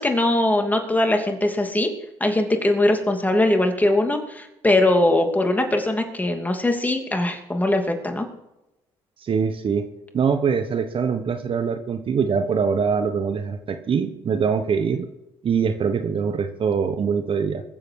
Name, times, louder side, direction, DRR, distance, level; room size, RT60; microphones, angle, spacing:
voice 1, 0.0-1.9 2.2-8.3, left 1 dB, 15° left, 4 dB, 2.7 m, -21 dB
voice 2, 9.2-9.9 10.1-15.1 15.4-17.6, right 6 dB, 45° right, 9 dB, 1.2 m, -23 dB
22.0 x 7.8 x 4.8 m, 0.91 s
supercardioid pair, 70°, 12 cm